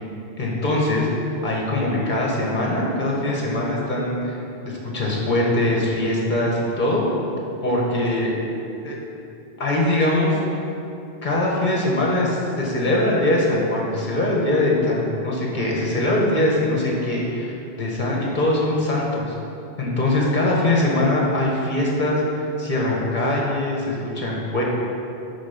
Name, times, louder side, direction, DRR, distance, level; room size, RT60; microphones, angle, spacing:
voice 1, 0.4-1.1 1.4-4.4 4.6-7.1 7.6-8.3 8.8-9.0 9.6-10.6 11.2-17.5 17.8-19.3 19.8-24.6, left 1 dB, 45° left, -3 dB, 1.5 m, -22 dB
8.9 x 3.7 x 5.9 m, 2.7 s
omnidirectional pair, 1.1 m